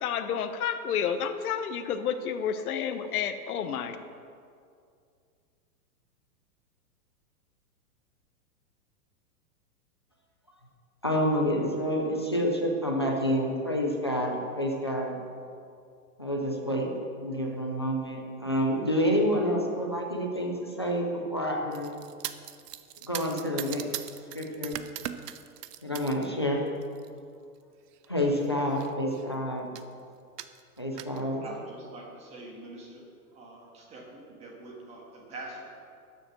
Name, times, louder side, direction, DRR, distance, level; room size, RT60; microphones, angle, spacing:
voice 1, 0.0-4.0, left 8 dB, 65° left, 8 dB, 1.0 m, -30 dB
voice 2, 11.0-15.1 16.2-16.9 17.2-21.9 23.0-23.8 24.3-24.8 25.8-26.6 28.1-29.7 30.8-31.4, equal, 20° left, 0 dB, 0.3 m, -28 dB
sound 1, 21.7-26.3 26.7-27.1 27.9-28.1 28.4-28.5 28.7-29.3 29.8-29.9 30.4-31.2, right 11 dB, 85° right, 0.8 m, -40 dB
voice 3, 31.4-33.1 33.3-35.6, right 2 dB, 15° right, -1 dB, 1.5 m, -45 dB
12.5 x 7.8 x 6.0 m, 2.3 s
supercardioid pair, 170°, 47 cm